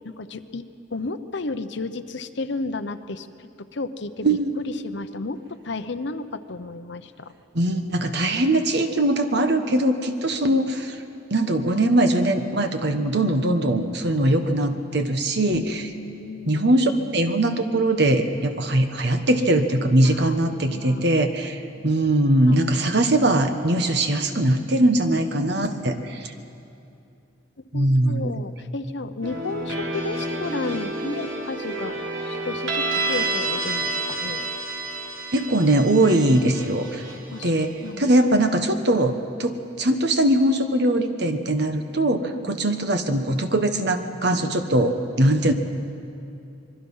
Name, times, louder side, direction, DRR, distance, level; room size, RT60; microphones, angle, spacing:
voice 1, 0.0-4.3 4.6-7.3 9.7-9.8 10.4-10.6 16.0-16.7 20.0-21.1 22.2-22.6 25.2-25.9 27.7-34.5 37.3-37.5 37.8-38.1 42.3-42.5, left 3 dB, 65° left, 10 dB, 0.9 m, -33 dB
voice 2, 4.2-4.6 7.5-11.0 11.3-15.9 16.5-26.3 27.7-28.4 35.3-37.0 37.4-37.7 38.0-45.5, right 1 dB, 60° right, 7 dB, 1.4 m, -21 dB
sound 1, 29.2-38.1, right 2 dB, 85° right, 3.8 m, -29 dB
25.5 x 22.0 x 5.6 m, 2.7 s
head